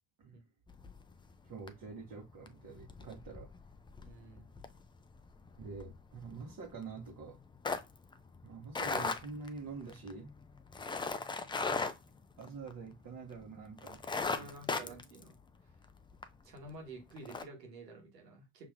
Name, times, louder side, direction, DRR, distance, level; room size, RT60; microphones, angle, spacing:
sound 1, 0.7-1.3 1.7-1.9 2.3-13.0 13.4-13.5 13.8-16.3 16.7-16.8 17.2-17.4, left 4 dB, 10° left, 0.4 m, -39 dB
voice 1, 1.4-3.5 5.6-7.4 8.4-10.3 12.4-14.0 14.4-14.5 14.8-15.0, right 4 dB, 45° right, 1.2 m, -46 dB
voice 2, 4.0-4.5 14.3-15.3 16.4-18.7, right 2 dB, 85° right, 1.4 m, -50 dB
5.8 x 2.9 x 2.5 m
hypercardioid pair, 60°, 48 cm